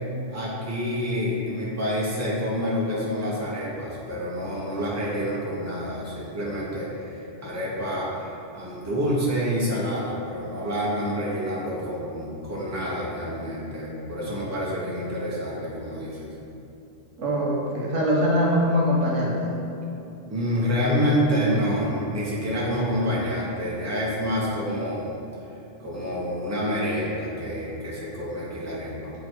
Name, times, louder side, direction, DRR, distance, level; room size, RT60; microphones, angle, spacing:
voice 1, 0.3-16.3 20.3-25.2 25.8-29.1, equal, 15° right, -6 dB, 1.1 m, -28 dB
voice 2, 17.2-19.6, equal, 80° right, -4 dB, 1.3 m, -23 dB
8.0 x 3.2 x 4.6 m, 2.7 s
omnidirectional pair, 1.2 m